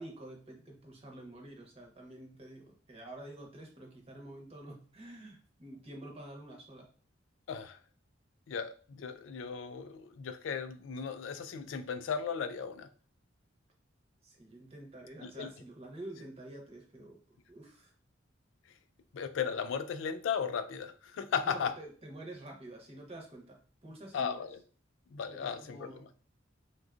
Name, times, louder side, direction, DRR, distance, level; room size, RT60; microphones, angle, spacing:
voice 1, 0.0-6.9 14.2-17.2 17.5-17.9 21.4-24.4 25.3-26.1, right 1 dB, 30° right, 0.8 m, -48 dB
voice 2, 7.5-7.8 8.5-12.9 15.2-15.5 19.1-21.7 24.1-24.6 25.1-26.1, left 6 dB, 75° left, 0.3 m, -36 dB
3.7 x 2.2 x 2.4 m
head